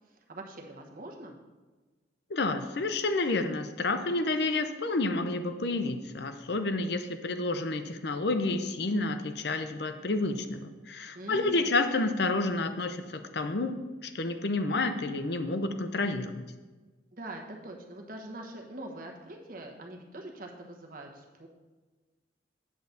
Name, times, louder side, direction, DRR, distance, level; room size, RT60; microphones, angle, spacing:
voice 1, 0.3-1.4 11.1-11.8 17.1-21.5, right 1 dB, 45° right, 1 dB, 1.1 m, -43 dB
voice 2, 2.3-16.4, left 2 dB, 60° left, 8 dB, 0.6 m, -30 dB
8.7 x 4.0 x 7.0 m, 1.3 s
head